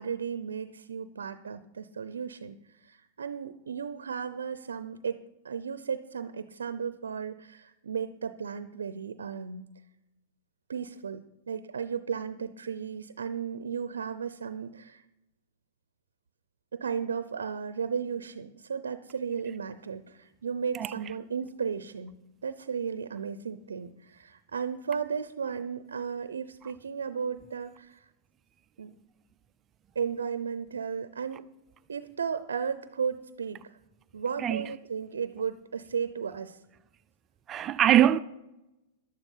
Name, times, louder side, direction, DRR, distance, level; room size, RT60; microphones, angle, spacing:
voice 1, 0.0-9.7 10.7-15.0 16.7-28.0 28.8-29.0 29.9-31.5 31.9-33.7 34.1-36.6, right 6 dB, 85° right, 0.6 m, -35 dB
voice 2, 37.5-38.2, right 11 dB, 30° right, 0.5 m, -23 dB
11.5 x 9.8 x 5.6 m
hypercardioid pair, 115°, 0 cm